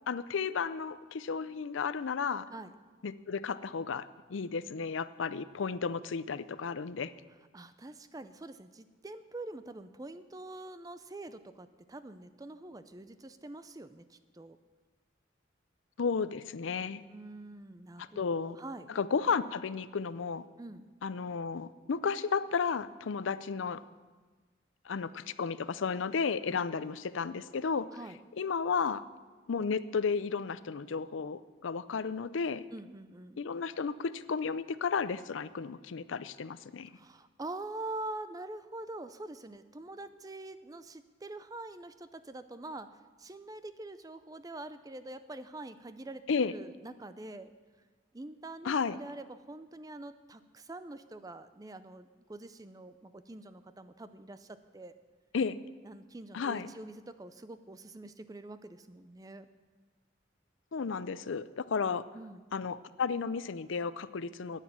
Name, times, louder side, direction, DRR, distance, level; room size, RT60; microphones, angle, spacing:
voice 1, 0.1-2.5 3.0-7.1 16.0-17.0 18.0-18.6 18.9-20.5 21.0-23.8 24.9-27.9 28.4-29.0 29.5-32.6 33.4-36.9 46.3-46.5 48.6-49.0 55.3-55.6 56.3-56.7 60.7-62.0 62.5-64.6, left 5 dB, 85° left, 15 dB, 0.5 m, -33 dB
voice 2, 7.5-14.6 17.1-18.9 20.6-20.9 26.5-26.6 27.9-28.2 32.7-33.4 36.9-42.9 43.2-46.2 46.5-47.5 48.1-54.9 55.8-59.5 62.1-62.4, right 2 dB, 20° right, 12 dB, 0.5 m, -45 dB
10.0 x 9.2 x 8.6 m, 1.4 s
head